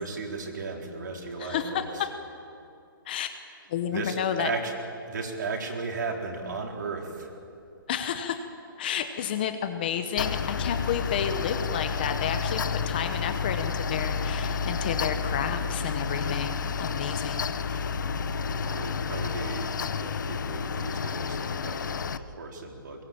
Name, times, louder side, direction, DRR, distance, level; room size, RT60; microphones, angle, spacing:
voice 1, 0.0-2.1 3.9-4.8 5.1-7.4 18.1-23.0, right 4 dB, 55° right, 1 dB, 4.2 m, -35 dB
voice 2, 1.4-2.1 3.1-3.4 3.7-4.5 7.9-8.4 8.8-17.8, left 8 dB, 25° left, 8 dB, 1.0 m, -31 dB
Mechanical fan, 10.2-22.2, left 5 dB, 55° left, 0.9 m, -30 dB
22.0 x 20.5 x 8.9 m, 2.5 s
hypercardioid pair, 175°, 12 cm